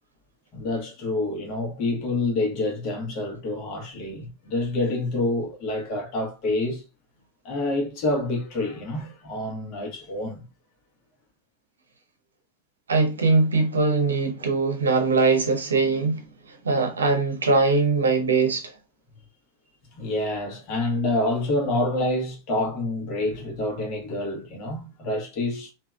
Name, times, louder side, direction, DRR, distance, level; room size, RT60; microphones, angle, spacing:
voice 1, 0.5-6.8 7.4-10.4 19.9-25.7, left 2 dB, 40° left, 1.4 m, -27 dB
voice 2, 12.9-16.2 16.6-18.7, right 3 dB, 70° right, 0.7 m, -21 dB
3.5 x 2.8 x 2.2 m
figure-of-eight pair, 90°, 0 cm